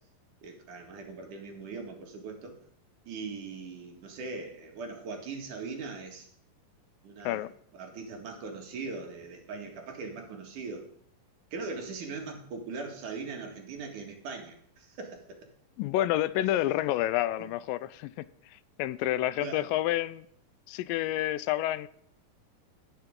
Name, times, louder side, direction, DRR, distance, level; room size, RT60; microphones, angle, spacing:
voice 1, 0.4-2.6 3.1-6.3 7.0-7.4 7.7-10.9 11.5-15.5 19.4-19.6, right 4 dB, 65° right, 2 dB, 3.4 m, -40 dB
voice 2, 15.8-20.3 20.7-21.9, left 14 dB, 85° left, 16 dB, 2.3 m, -29 dB
18.5 x 7.0 x 3.7 m, 0.67 s
omnidirectional pair, 3.9 m